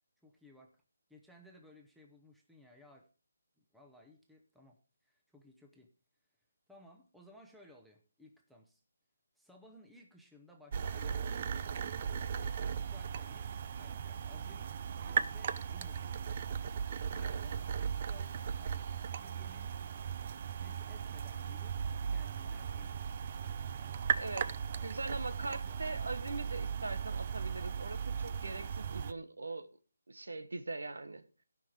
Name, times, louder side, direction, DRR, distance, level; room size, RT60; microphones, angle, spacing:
voice 1, 0.2-0.8 1.1-3.1 3.6-5.9 6.7-8.8 9.4-11.5 12.7-14.7 15.0-16.1 17.1-19.7 20.6-23.0 23.8-24.3 24.7-24.9 25.4-25.8, left 1 dB, ahead, 0.9 m, -59 dB
sound 1, 10.7-29.1, right 7 dB, 30° right, 0.5 m, -37 dB
voice 2, 24.1-24.5 24.8-29.7 30.1-31.2, right 3 dB, 90° right, 1.5 m, -41 dB
16.5 x 5.7 x 5.0 m
hypercardioid pair, 170°, 0 cm